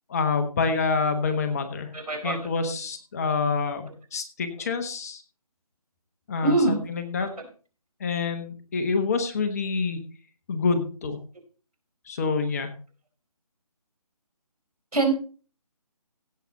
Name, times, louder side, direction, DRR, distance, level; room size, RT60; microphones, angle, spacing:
voice 1, 0.1-1.9 2.2-5.2 6.3-7.3 8.0-10.0 10.5-11.2 12.1-12.7, left 4 dB, 25° left, 8 dB, 1.2 m, -27 dB
voice 2, 1.9-2.4 6.4-6.8 7.2-7.3 14.9-15.1, right 3 dB, 80° right, 5 dB, 4.2 m, -23 dB
16.0 x 6.7 x 4.0 m, 0.37 s
figure-of-eight pair, 160°, 19 cm